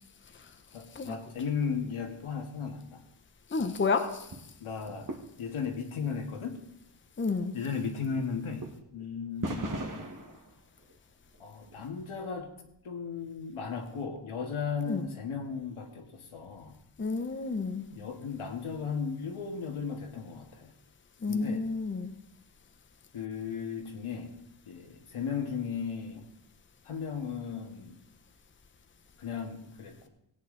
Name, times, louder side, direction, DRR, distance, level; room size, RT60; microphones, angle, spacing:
voice 1, 0.7-3.0 4.6-5.1 5.4-6.6 7.5-10.0 11.4-12.5 12.8-16.7 17.9-20.7 21.3-21.6 23.1-24.3 24.7-26.2 26.8-28.0 29.2-30.1, left 6 dB, 80° left, 1.9 m, -36 dB
voice 2, 3.5-4.3 7.2-7.6 14.9-15.0 17.0-17.9 21.2-22.1, left 4 dB, 25° left, 0.8 m, -30 dB
sound 1, 4.2-4.4 4.8-5.7 6.0-6.1 6.4-6.5 7.5-7.6 8.5-9.0 9.4-10.9 11.3-11.8 12.1-12.2, right 2 dB, 40° right, 1.4 m, -39 dB
17.0 x 8.6 x 3.9 m
wide cardioid pair, 105°, 49 cm